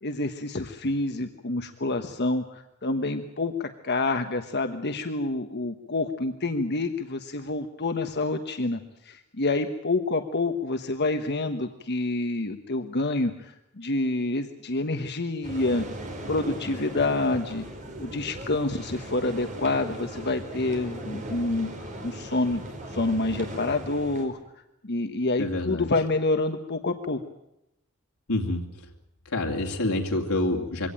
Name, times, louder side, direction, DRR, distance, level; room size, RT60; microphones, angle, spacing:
voice 1, 0.0-15.9 16.3-17.6 18.0-22.6 22.9-24.4 24.8-27.2, left 2 dB, 50° left, 7 dB, 1.3 m, -28 dB
sound 1, 15.4-24.3, right 1 dB, 35° right, 4.8 m, -38 dB
voice 2, 25.4-25.9 28.3-28.9 29.2-30.9, left 2 dB, 85° left, 0 dB, 2.8 m, -27 dB
23.5 x 17.5 x 9.0 m, 0.85 s
head